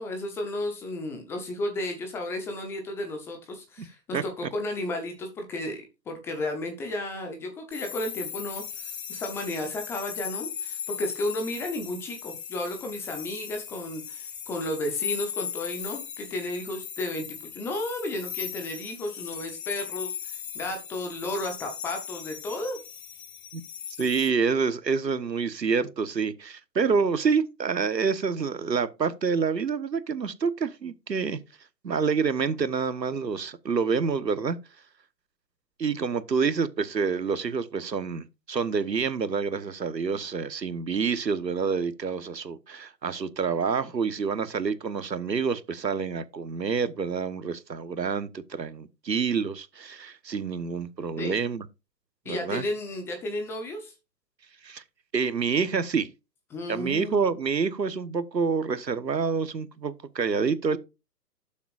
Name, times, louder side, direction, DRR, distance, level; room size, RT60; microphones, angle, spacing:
voice 1, 0.0-17.2 17.5-22.8 51.2-51.4 52.2-53.9 56.5-57.2, left 1 dB, 5° left, 0.7 m, -33 dB
sound 1, 7.7-24.3, left 8 dB, 55° left, 2.0 m, -38 dB
voice 2, 24.0-31.4 31.8-34.6 35.8-51.7 52.3-52.6 54.6-54.8 55.1-56.1 56.7-60.8, right 5 dB, 80° right, 1.3 m, -27 dB
12.0 x 7.1 x 2.5 m
figure-of-eight pair, 130°, 50 cm